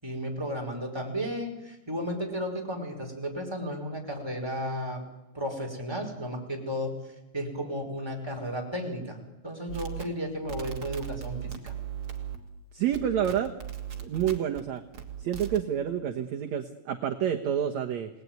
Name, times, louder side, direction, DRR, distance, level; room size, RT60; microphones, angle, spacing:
voice 1, 0.0-5.0 5.3-6.9 7.3-9.2 9.4-11.7, equal, 5° right, 1 dB, 5.1 m, -33 dB
sound 1, 9.7-12.6 12.9-14.6 14.9-15.6, right 9 dB, 40° right, 2.9 m, -38 dB
voice 2, 12.7-13.5 14.0-14.8 15.2-18.1, right 9 dB, 60° right, 3 dB, 2.2 m, -28 dB
30.0 x 19.0 x 9.5 m, 0.94 s
omnidirectional pair, 4.3 m